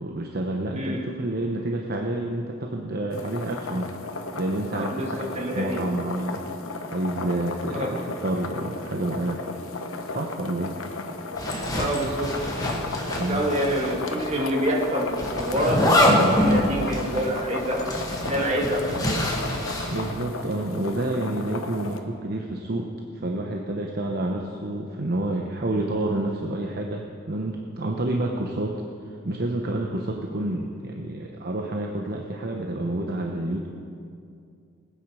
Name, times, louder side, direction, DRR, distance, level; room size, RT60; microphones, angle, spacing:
voice 1, 0.0-3.9 4.3-6.4 6.8-9.4 10.1-10.8 13.2-13.4 16.0-16.5 19.9-28.8 29.2-33.7, right 1 dB, 50° right, 1 dB, 0.9 m, -29 dB
voice 2, 0.7-1.1 4.8-5.8 7.7-8.0 11.7-12.7 13.3-18.0 18.3-19.2, equal, 35° right, -1 dB, 2.0 m, -27 dB
sound 1, 3.1-22.0, left 3 dB, 90° left, 1.1 m, -34 dB
Zipper (clothing), 11.4-13.9 14.2-14.3 15.2-20.1, left 1 dB, 20° left, 1.8 m, -25 dB
19.5 x 9.3 x 4.9 m, 2.4 s
head